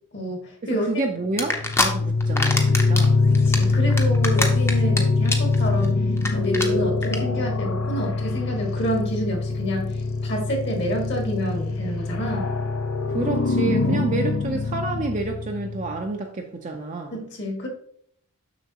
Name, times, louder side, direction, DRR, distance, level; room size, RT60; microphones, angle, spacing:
voice 1, 0.1-1.1 3.4-6.0 6.3-12.6 13.8-14.0 17.1-17.7, equal, 50° left, 0 dB, 1.7 m, -29 dB
voice 2, 0.9-3.2 13.1-17.2, right 2 dB, 35° right, 2 dB, 0.5 m, -29 dB
sound 1, 1.4-16.0, left 3 dB, 70° left, 0.6 m, -23 dB
sound 2, 1.4-1.9 2.2-3.0 3.3-5.0 5.3-5.6 5.8-5.9 6.2-6.3 6.5-6.7 7.0-7.2, left 2 dB, 10° left, 0.7 m, -23 dB
7.0 x 6.2 x 2.9 m, 0.66 s
head